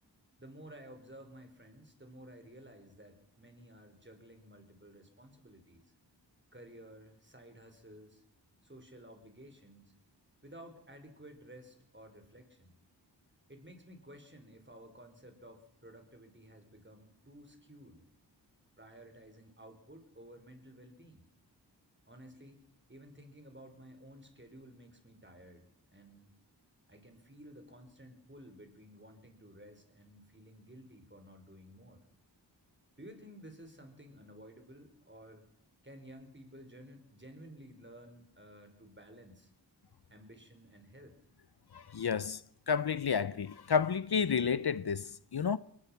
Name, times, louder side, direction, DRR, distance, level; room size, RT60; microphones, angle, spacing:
voice 1, 0.4-5.8 6.5-8.2 8.6-9.9 10.4-12.8 13.5-18.0 18.8-21.3 22.1-22.6 22.9-26.3 26.9-32.0 33.0-35.4 35.8-39.5 40.1-41.2, right 1 dB, 25° right, 5.3 m, -54 dB
voice 2, 41.7-42.4 42.7-45.6, left 6 dB, 60° left, 0.7 m, -31 dB
22.5 x 19.5 x 6.0 m
cardioid pair, 40°, 43 cm